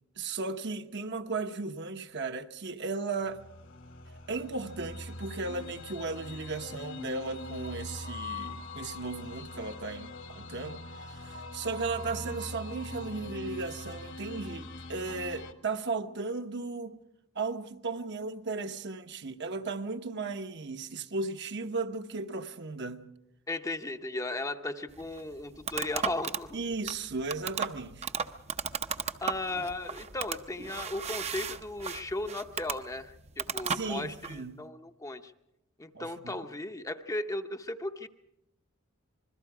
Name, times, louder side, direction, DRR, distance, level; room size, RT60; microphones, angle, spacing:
voice 1, 0.2-3.4 4.3-10.8 11.1-17.0 17.3-23.1 26.5-28.1 33.7-34.6 35.9-36.4, right 3 dB, 55° right, 1.0 m, -36 dB
sound 1, 3.2-15.5, left 2 dB, 60° left, 1.5 m, -42 dB
voice 2, 23.5-26.6 29.2-35.3 35.8-38.1, left 2 dB, 15° left, 0.7 m, -36 dB
sound 2, 24.9-34.4, right 6 dB, 30° right, 0.6 m, -36 dB
26.5 x 21.5 x 4.8 m
head